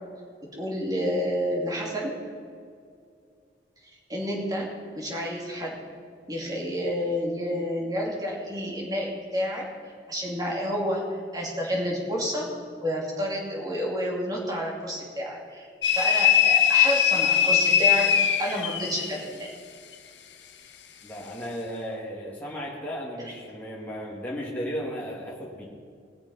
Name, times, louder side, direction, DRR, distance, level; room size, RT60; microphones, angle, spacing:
voice 1, 0.5-2.2 4.1-4.7 4.9-5.8 6.3-9.7 10.1-12.5 12.8-15.7 15.9-18.1 18.4-19.5, equal, 20° right, -2 dB, 2.7 m, -29 dB
sound 1, 15.8-19.1, left 8 dB, 90° left, 1.1 m, -21 dB
voice 2, 21.0-25.7, equal, 10° left, -5 dB, 2.2 m, -35 dB
20.0 x 6.9 x 5.6 m, 2.2 s
head